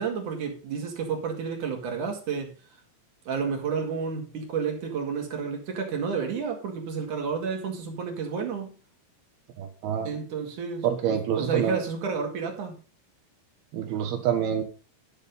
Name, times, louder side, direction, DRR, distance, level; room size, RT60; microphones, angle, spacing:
voice 1, 0.0-2.5 3.2-8.8 10.0-10.9 11.4-12.8, right 6 dB, 50° right, 2.8 m, -30 dB
voice 2, 9.6-10.1 10.8-11.8 13.7-14.6, right 8 dB, 65° right, 2.6 m, -27 dB
12.5 x 6.6 x 5.3 m
omnidirectional pair, 5.9 m